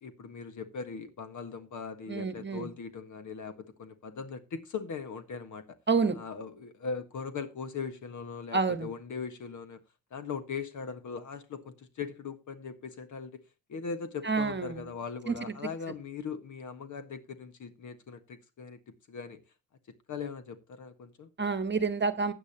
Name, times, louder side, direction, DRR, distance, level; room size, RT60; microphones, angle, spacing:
voice 1, 0.0-5.6 6.1-9.8 10.1-13.4 13.7-18.8 19.1-19.4 19.9-21.3, left 5 dB, 50° left, 1.6 m, -40 dB
voice 2, 2.1-2.7 5.9-6.2 8.5-8.9 14.2-14.9 15.3-15.4 21.4-22.3, right 4 dB, 25° right, 1.4 m, -28 dB
15.0 x 9.3 x 2.9 m
hypercardioid pair, 50°, 39 cm